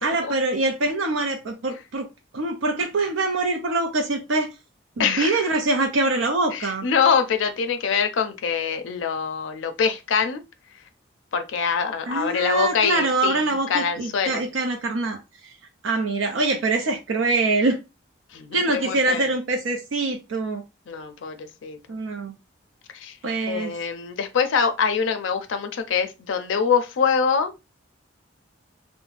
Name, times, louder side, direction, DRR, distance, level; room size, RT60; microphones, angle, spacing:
voice 1, 0.0-2.1 2.3-4.5 5.0-6.9 12.0-15.2 15.8-17.8 18.5-20.6 21.9-22.3 23.2-23.7, right 2 dB, 80° right, 0.5 m, -24 dB
voice 2, 5.0-5.4 6.5-10.4 11.3-13.4 13.7-14.4 18.3-19.3 20.9-21.8 22.9-23.1 23.5-27.5, left 6 dB, 80° left, 0.4 m, -24 dB
2.5 x 2.1 x 3.2 m
head